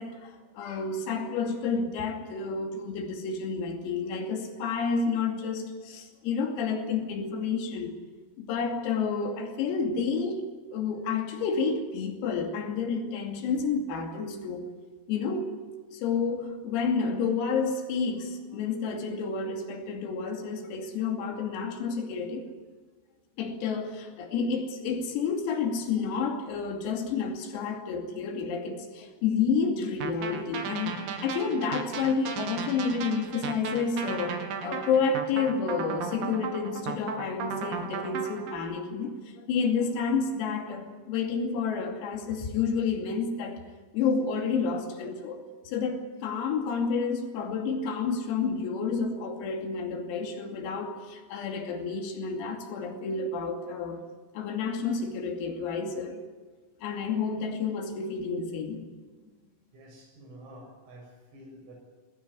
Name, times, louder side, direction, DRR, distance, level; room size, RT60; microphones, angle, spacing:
voice 1, 0.0-7.9 8.4-10.4 10.7-14.7 15.1-15.5 15.9-22.5 23.4-43.6 43.9-54.0 54.4-56.2 56.8-58.8, left 5 dB, 85° left, 3 dB, 5.4 m, -30 dB
sound 1, 30.0-38.6, right 6 dB, 55° right, 2.8 m, -35 dB
voice 2, 59.7-61.8, right 1 dB, 80° right, 2 dB, 9.4 m, -49 dB
22.0 x 17.0 x 9.7 m, 1.4 s
omnidirectional pair, 6.0 m